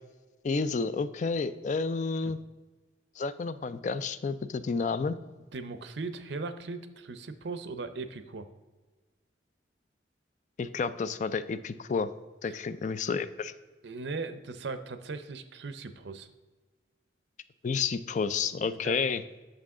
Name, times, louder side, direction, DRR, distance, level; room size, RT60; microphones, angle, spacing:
voice 1, 0.4-2.4 3.2-5.2 10.6-12.1 12.4-13.5 17.6-19.2, left 4 dB, 40° left, 13 dB, 0.3 m, -30 dB
voice 2, 5.5-8.5 12.5-12.6 13.8-16.3 18.6-19.0, right 3 dB, 75° right, 11 dB, 0.6 m, -38 dB
8.3 x 6.4 x 3.7 m, 1.3 s
head